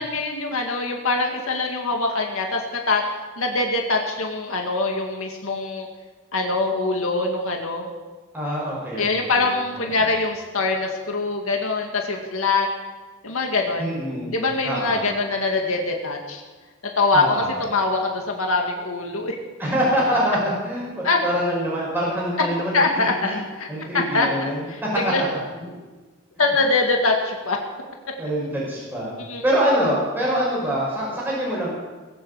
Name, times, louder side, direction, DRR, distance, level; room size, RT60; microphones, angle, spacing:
voice 1, 0.0-3.1 3.4-5.9 6.3-7.9 9.0-12.7 13.2-13.9 14.3-16.4 16.8-19.4 21.0-21.2 22.7-23.7 23.9-25.2 26.4-27.6 29.2-29.4, left 3 dB, 85° left, 2 dB, 2.0 m, -23 dB
voice 2, 8.3-9.5 9.8-10.0 13.8-14.3 14.6-15.1 17.1-17.5 19.6-23.3 23.7-25.1 25.5-25.8 28.2-29.1 29.4-31.7, equal, 10° right, -6 dB, 5.5 m, -25 dB
20.5 x 8.0 x 8.2 m, 1.3 s
head